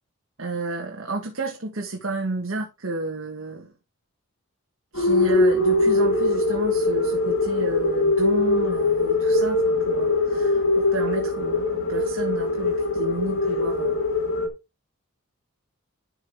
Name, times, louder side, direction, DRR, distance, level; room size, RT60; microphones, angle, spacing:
voice 1, 0.4-3.7 4.9-14.1, right 3 dB, 65° right, 1.6 m, -32 dB
sound 1, 4.9-14.5, left 2 dB, 70° left, 2.2 m, -22 dB
12.0 x 4.9 x 3.6 m
head